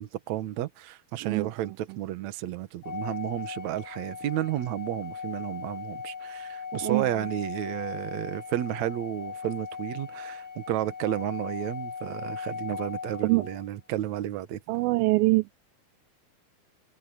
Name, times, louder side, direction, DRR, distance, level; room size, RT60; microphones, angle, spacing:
voice 1, 0.0-14.6, right 13 dB, 60° right, 2.0 m, -32 dB
Organ, 2.8-13.7, left 6 dB, 30° left, 2.9 m, -38 dB
voice 2, 14.7-15.5, right 23 dB, 80° right, 2.2 m, -23 dB
omnidirectional pair, 4.5 m